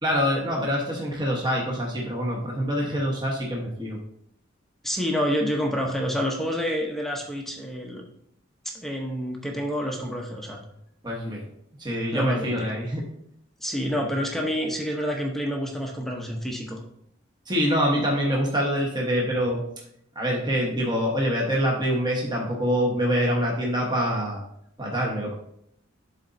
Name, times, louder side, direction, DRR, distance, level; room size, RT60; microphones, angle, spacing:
voice 1, 0.0-4.0 11.0-11.4 11.8-13.0 17.5-19.6 20.1-24.4 24.8-25.3, equal, 20° right, -2 dB, 1.1 m, -25 dB
voice 2, 4.8-8.0 8.6-10.6 12.1-12.7 13.6-16.8, equal, ahead, 0 dB, 0.7 m, -28 dB
11.5 x 4.0 x 2.6 m, 0.72 s
head